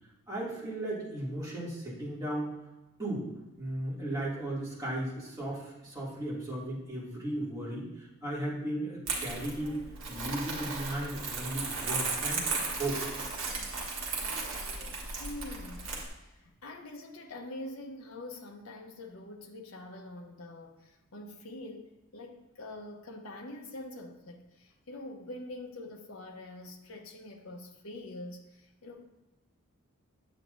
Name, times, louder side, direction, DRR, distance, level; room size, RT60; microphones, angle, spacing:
voice 1, 0.3-2.5 3.0-3.3 3.6-9.8 10.1-12.5 12.8-13.0, right 1 dB, 15° right, -8 dB, 2.4 m, -36 dB
Crumpling crinkling, 9.1-16.1, right 3 dB, 65° right, 1.5 m, -35 dB
voice 2, 15.2-15.9 16.2-29.0, left 1 dB, 75° left, 3 dB, 1.0 m, -45 dB
8.1 x 8.0 x 2.6 m, 1.0 s
head